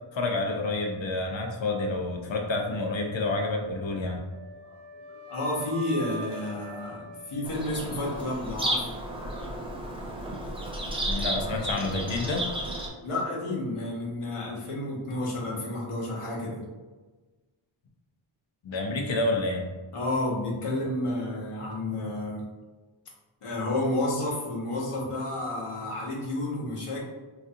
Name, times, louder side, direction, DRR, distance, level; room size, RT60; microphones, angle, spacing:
voice 1, 0.1-4.2 11.0-12.5 18.6-19.6, left 2 dB, 65° left, 2 dB, 0.7 m, -29 dB
Wind instrument woodwind instrument, 4.3-8.4, right 1 dB, 85° right, 0.6 m, -43 dB
voice 2, 4.6-5.0 5.3-8.9 13.0-16.6 19.9-22.4 23.4-27.0, left 1 dB, 85° left, -4 dB, 1.0 m, -31 dB
Bird vocalization bird call bird song, 7.4-12.9, right 1 dB, 10° right, 0.5 m, -33 dB
3.9 x 2.5 x 2.6 m, 1.3 s
wide cardioid pair, 95°, 50 cm